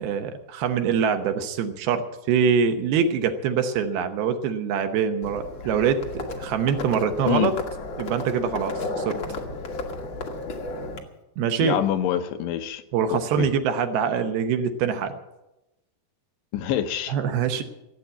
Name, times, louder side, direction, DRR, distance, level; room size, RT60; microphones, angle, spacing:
voice 1, 0.0-7.5 8.0-9.2 11.4-11.8 12.9-15.2 17.1-17.6, right 7 dB, 75° right, 7 dB, 2.7 m, -24 dB
Livestock farm animals working animals, 5.2-11.0, left 2 dB, 70° left, 1.1 m, -33 dB
voice 2, 11.6-12.8 13.1-13.5 16.5-17.2, left 11 dB, 90° left, 8 dB, 3.2 m, -26 dB
16.5 x 8.3 x 9.0 m, 0.97 s
omnidirectional pair, 4.8 m